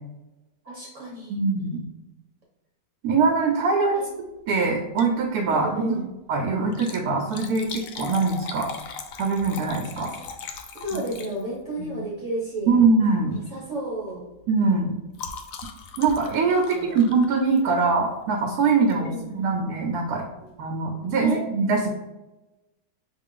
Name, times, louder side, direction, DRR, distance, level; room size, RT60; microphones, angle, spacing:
voice 1, 0.6-1.8 3.9-4.1 5.5-6.0 10.0-10.2 10.7-12.8 13.3-14.2 16.6-17.0 18.9-19.6 20.4-20.5 21.2-21.4, right 1 dB, 55° right, -4 dB, 1.2 m, -33 dB
voice 2, 1.3-1.8 3.0-4.0 4.5-6.0 6.3-8.7 9.2-10.1 10.9-11.0 11.9-12.1 12.7-13.4 14.5-14.9 16.0-20.2 20.6-21.9, right 4 dB, 80° right, 1 dB, 1.2 m, -22 dB
Liquid, 4.8-5.2 5.6-5.7 6.6-11.7 12.7-13.0 13.3-13.6 13.9-18.0 18.9-19.2 19.7-19.8 20.0-20.1, left 5 dB, 70° left, 0.9 m, -39 dB
5.7 x 2.4 x 3.7 m, 1.0 s
omnidirectional pair, 1.6 m